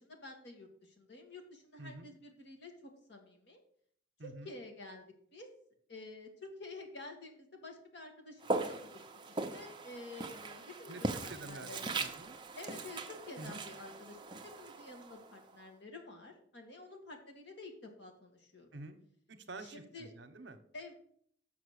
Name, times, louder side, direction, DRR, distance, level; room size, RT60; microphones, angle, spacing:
voice 1, 0.0-3.6 4.2-5.1 5.3-5.5 5.9-11.9 12.5-18.7 19.6-20.1 20.7-20.9, left 2 dB, 60° left, 3 dB, 1.8 m, -50 dB
voice 2, 1.8-2.1 4.2-4.5 10.9-12.4 13.4-13.6 18.7-19.0 19.3-20.6, right 2 dB, 65° right, 8 dB, 0.9 m, -48 dB
Walk footsteps, 8.4-15.5, right 2 dB, 25° right, 0.6 m, -40 dB
7.3 x 5.8 x 6.6 m, 0.63 s
head